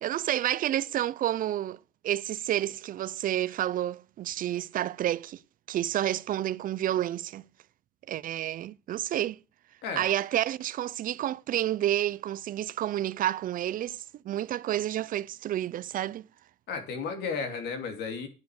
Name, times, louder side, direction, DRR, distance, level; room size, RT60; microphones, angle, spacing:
voice 1, 0.0-5.4 5.7-7.4 8.1-9.4 10.0-16.3, right 12 dB, 55° right, 0.6 m, -30 dB
voice 2, 16.7-18.3, left 5 dB, 75° left, 3.0 m, -33 dB
9.6 x 8.4 x 6.5 m
cardioid pair, 110°, 17 cm